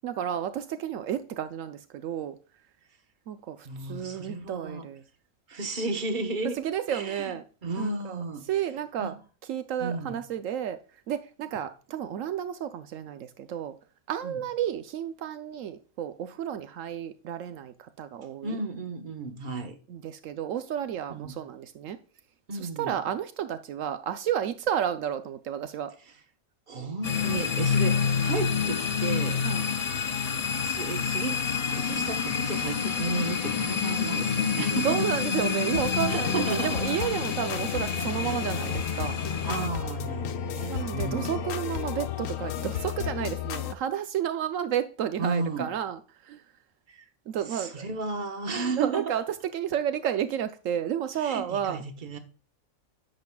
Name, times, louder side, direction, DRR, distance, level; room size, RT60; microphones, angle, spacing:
voice 1, 0.0-2.4 3.3-5.0 6.6-7.4 7.8-9.1 9.5-10.8 11.1-13.7 14.1-18.6 19.9-22.0 22.5-25.9 29.4-29.7 34.8-39.2 40.7-46.4 47.3-47.9 48.8-49.2 49.5-51.8, right 9 dB, 80° right, 1.0 m, -31 dB
voice 2, 3.6-4.9 5.5-6.6 6.9-8.5 9.0-9.2 9.8-10.2 14.2-14.4 18.4-19.8 21.1-21.3 22.5-23.0 26.7-28.0 28.2-29.5 30.6-31.4 31.7-35.0 36.1-36.8 37.7-38.1 39.4-41.5 45.2-45.7 46.9-47.0 47.5-49.1 51.2-52.2, right 3 dB, 40° right, 1.3 m, -33 dB
sound 1, 27.0-39.7, left 6 dB, 50° left, 0.5 m, -28 dB
sound 2, 35.7-43.7, left 8 dB, 90° left, 1.1 m, -33 dB
10.5 x 7.6 x 2.3 m
omnidirectional pair, 1.3 m